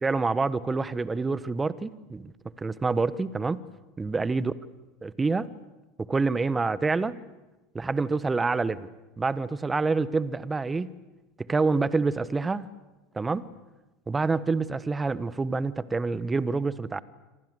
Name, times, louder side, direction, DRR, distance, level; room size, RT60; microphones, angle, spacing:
voice 1, 0.0-2.3 2.6-3.6 4.0-4.5 5.0-5.5 6.1-7.2 7.7-8.9 9.2-10.9 11.4-12.7 13.1-13.5 14.1-17.0, right 4 dB, 15° right, 17 dB, 1.3 m, -27 dB
27.0 x 26.0 x 8.1 m, 1.1 s
figure-of-eight pair, 80°, 0 cm